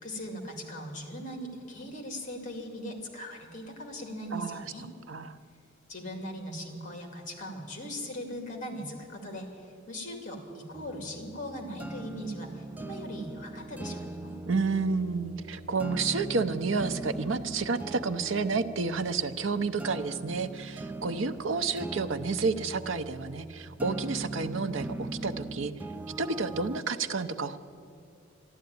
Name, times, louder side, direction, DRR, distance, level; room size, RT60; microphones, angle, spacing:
voice 1, 0.0-4.9 5.9-14.4, equal, 40° left, 4 dB, 2.3 m, -39 dB
voice 2, 4.3-4.7 5.1-5.3 14.5-25.7 26.2-27.6, right 4 dB, 70° right, 10 dB, 0.7 m, -30 dB
sound 1, 10.7-26.8, right 2 dB, 10° right, 0.3 m, -40 dB
13.0 x 11.5 x 9.4 m, 2.6 s
head